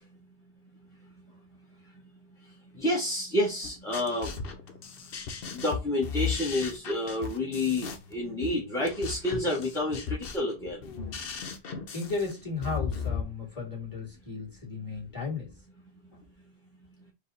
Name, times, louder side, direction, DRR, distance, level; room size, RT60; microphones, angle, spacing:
voice 1, 2.7-4.3 5.5-10.8, left 1 dB, 5° left, 1.1 m, -29 dB
sound 1, 3.6-13.2, left 6 dB, 65° left, 0.9 m, -36 dB
voice 2, 11.9-15.5 16.1-16.2, left 4 dB, 20° left, 2.1 m, -35 dB
4.8 x 2.4 x 3.9 m
omnidirectional pair, 1.1 m